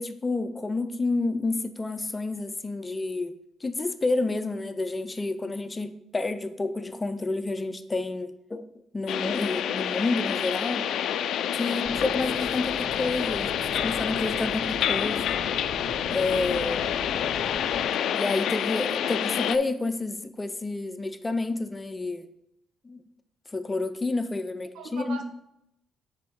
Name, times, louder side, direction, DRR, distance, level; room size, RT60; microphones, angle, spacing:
voice 1, 0.0-3.4 3.6-8.7 8.9-10.9 11.5-15.4 16.1-17.1 18.1-22.3 22.8-23.0 23.5-25.2, left 3 dB, 20° left, 0.6 m, -29 dB
sound 1, 9.1-19.6, left 9 dB, 75° left, 0.4 m, -28 dB
voice 2, 11.5-11.9 19.0-19.1 24.7-25.2, right 4 dB, 80° right, 1.0 m, -40 dB
sound 2, 11.8-17.8, right 1 dB, 50° right, 1.7 m, -41 dB
6.7 x 5.1 x 4.7 m
cardioid pair, 90°, 0 cm